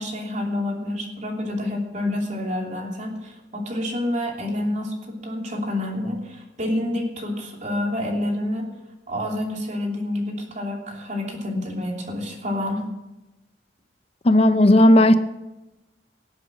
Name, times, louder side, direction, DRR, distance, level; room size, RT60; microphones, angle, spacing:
voice 1, 0.0-8.7 9.1-12.8, left 1 dB, 45° right, 0 dB, 3.1 m, -28 dB
voice 2, 14.2-15.1, left 1 dB, 35° left, 11 dB, 0.5 m, -14 dB
18.5 x 7.9 x 6.3 m, 0.99 s
head